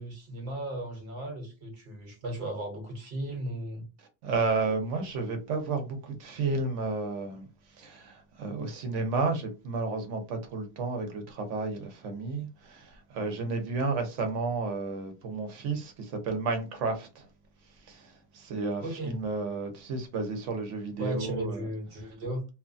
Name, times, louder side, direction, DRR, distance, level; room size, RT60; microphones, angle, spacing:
voice 1, 0.0-3.9 18.8-19.2 21.0-22.5, right 1 dB, 65° right, 1.1 m, -36 dB
voice 2, 4.2-7.4 7.8-17.3 17.9-21.6, right 3 dB, 85° right, 1.1 m, -32 dB
2.9 x 2.1 x 2.5 m
omnidirectional pair, 1.2 m